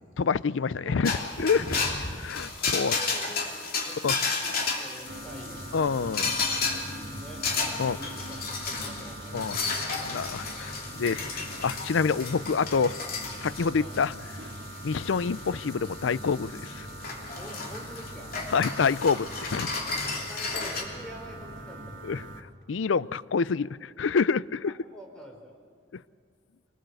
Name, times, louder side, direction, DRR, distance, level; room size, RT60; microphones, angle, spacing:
voice 1, 0.2-1.8 2.1-3.0 4.0-4.2 5.7-6.3 7.8-8.0 9.3-9.6 10.0-13.0 13.4-14.1 14.8-16.9 18.5-19.7 22.0-24.7 25.9-26.0, left 5 dB, 85° left, 19 dB, 0.5 m, -27 dB
voice 2, 0.8-1.4 2.5-5.7 6.7-9.8 13.8-14.0 17.4-18.4 20.3-22.1 24.7-25.6, equal, 5° left, 1 dB, 4.0 m, -47 dB
sound 1, 1.0-20.8, left 4 dB, 50° left, 3.0 m, -33 dB
sound 2, 5.1-22.4, right 1 dB, 85° right, 1.9 m, -42 dB
25.0 x 19.0 x 7.9 m, 2.2 s
head